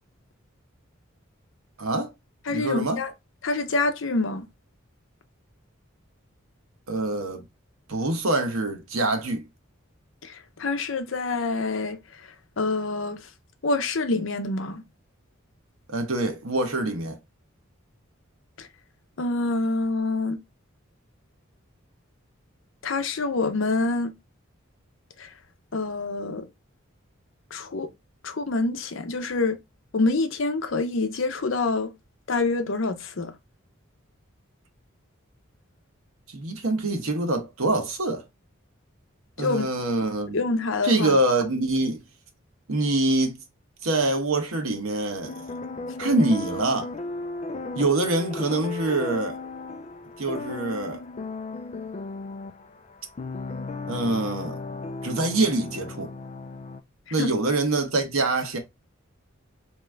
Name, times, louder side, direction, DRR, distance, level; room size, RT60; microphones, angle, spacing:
voice 1, 1.8-2.1 2.5-3.0 6.9-7.4 7.9-9.4 15.9-17.2 36.3-38.2 39.4-40.4 40.8-42.0 42.7-43.4 43.8-45.4 46.0-46.9 47.8-49.4 50.2-51.0 53.9-54.6 55.0-56.1 57.1-58.6, right 2 dB, 85° right, 1.0 m, -25 dB
voice 2, 2.5-3.1 3.4-4.5 10.2-12.0 12.6-13.2 13.6-14.8 18.6-18.7 19.2-20.4 22.8-24.1 25.2-25.3 25.7-26.5 27.5-27.9 28.2-29.6 29.9-31.9 32.3-33.3 39.4-39.7 40.3-41.1 57.2-57.3, left 3 dB, 65° left, 0.7 m, -26 dB
sound 1, 45.2-56.8, left 3 dB, 30° left, 0.3 m, -35 dB
3.5 x 3.0 x 3.3 m
head